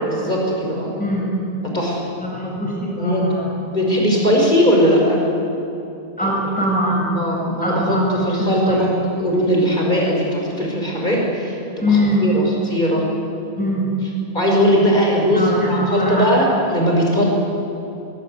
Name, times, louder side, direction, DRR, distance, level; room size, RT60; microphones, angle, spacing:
voice 1, 0.1-0.9 1.7-2.1 3.0-3.2 3.6-5.2 6.2-6.3 7.2-8.9 9.2-13.0 14.3-17.3, equal, 45° left, -1 dB, 6.1 m, -19 dB
voice 2, 1.0-1.4 2.2-3.6 6.2-7.1 7.6-8.9 11.8-12.3 13.6-13.9 15.3-16.3, equal, 5° left, -4 dB, 7.0 m, -22 dB
22.0 x 21.5 x 9.8 m, 2.8 s
omnidirectional pair, 1.1 m